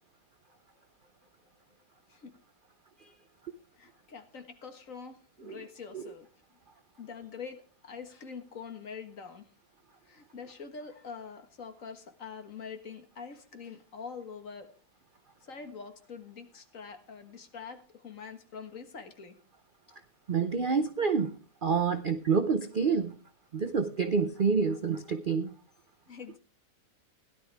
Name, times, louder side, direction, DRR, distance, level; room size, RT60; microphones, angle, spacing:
voice 1, 0.8-1.1 2.1-2.3 3.8-6.3 7.0-9.5 10.0-14.7 15.4-19.4 26.1-26.4, left 5 dB, 45° left, 7 dB, 1.9 m, -45 dB
voice 2, 20.3-23.2 23.5-25.5, right 5 dB, 70° right, 10 dB, 0.5 m, -28 dB
17.0 x 11.5 x 3.4 m, 0.38 s
omnidirectional pair, 2.0 m